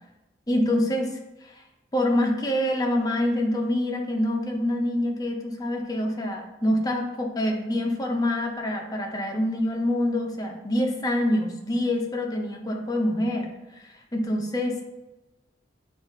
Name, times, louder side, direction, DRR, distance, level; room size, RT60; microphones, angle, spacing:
voice 1, 0.5-1.6 1.9-14.8, left 1 dB, 20° left, 2 dB, 0.5 m, -26 dB
6.8 x 2.4 x 2.7 m, 0.97 s
head